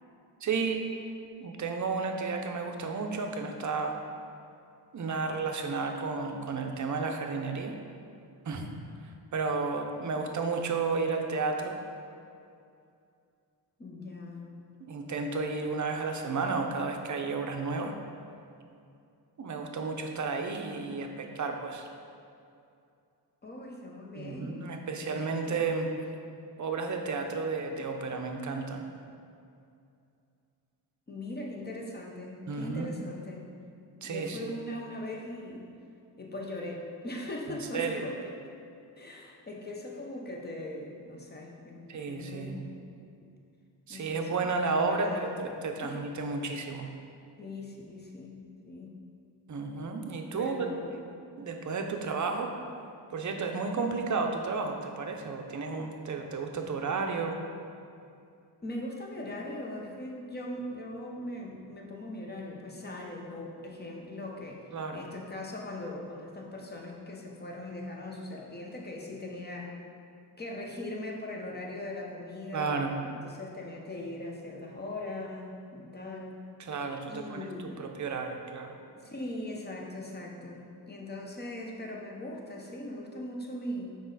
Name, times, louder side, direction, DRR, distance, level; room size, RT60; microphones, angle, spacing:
voice 1, 0.4-0.9 1.4-4.0 4.9-7.7 8.5-8.7 9.0-11.8 14.8-18.0 19.4-21.9 24.2-25.9 26.6-28.8 32.5-33.0 34.0-34.5 37.5-38.0 41.9-42.6 43.9-46.9 49.5-50.6 51.4-52.5 53.1-57.4 64.7-65.1 72.5-73.0 76.6-78.8, right 4 dB, 45° right, 4 dB, 0.6 m, -32 dB
voice 2, 13.8-14.4 23.4-24.7 25.0-25.6 31.1-33.4 34.0-35.7 36.2-38.3 39.0-42.8 43.9-45.4 45.8-46.0 47.4-49.0 50.4-50.9 58.6-69.7 70.4-76.4 77.1-77.8 78.9-84.0, left 1 dB, 25° left, -1 dB, 0.8 m, -40 dB
6.2 x 4.9 x 3.9 m, 2.5 s
wide cardioid pair, 115°, 43 cm